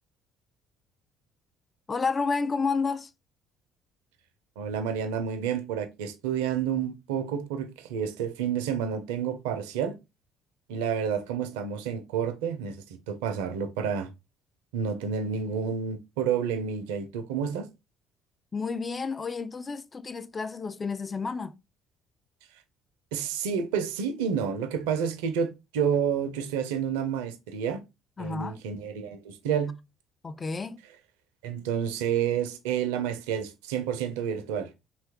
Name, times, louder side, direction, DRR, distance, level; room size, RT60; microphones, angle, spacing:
voice 1, 1.9-3.1 18.5-21.5 28.2-28.6 30.2-30.8, left 4 dB, 30° left, 0.3 m, -30 dB
voice 2, 4.6-10.0 10.7-12.8 13.1-14.1 14.7-17.7 23.1-27.8 28.2-29.7 31.4-34.7, right 7 dB, 85° right, 0.5 m, -29 dB
2.7 x 2.3 x 3.5 m
hypercardioid pair, 60°, 0 cm